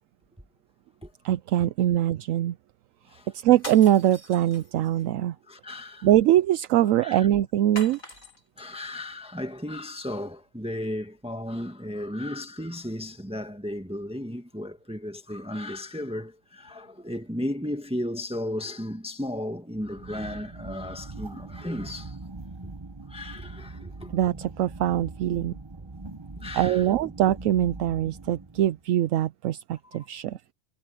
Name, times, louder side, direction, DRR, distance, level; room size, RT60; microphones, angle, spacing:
voice 1, 1.2-2.6 3.3-5.4 6.0-8.0 24.1-25.6 26.5-30.5, right 12 dB, 75° right, 0.9 m, -23 dB
sound 1, 3.5-5.0 7.8-8.7, left 1 dB, 80° left, 6.2 m, -42 dB
voice 2, 5.5-6.1 6.9-7.3 8.6-22.2 23.1-24.1 26.4-27.1, left 1 dB, 5° right, 1.5 m, -35 dB
sound 2, 19.7-28.8, right 3 dB, 20° right, 1.1 m, -42 dB
omnidirectional pair, 1.4 m